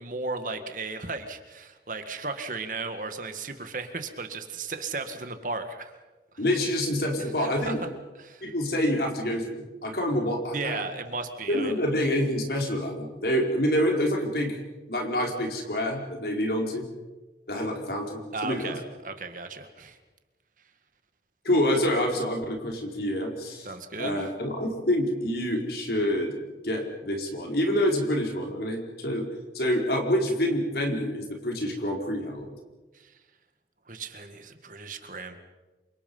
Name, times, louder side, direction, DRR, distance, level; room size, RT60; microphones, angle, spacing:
voice 1, 0.0-5.9 7.4-7.7 8.2-8.5 10.5-11.8 18.3-20.0 23.6-24.3 32.9-33.1 33.9-35.4, right 3 dB, 45° right, 7 dB, 1.9 m, -35 dB
voice 2, 6.4-7.8 8.4-10.9 11.5-14.6 14.9-16.8 17.5-18.8 21.4-23.7 24.0-26.4 26.6-29.3 29.5-32.5, equal, 60° left, 1 dB, 4.6 m, -27 dB
28.0 x 25.0 x 5.6 m, 1.2 s
head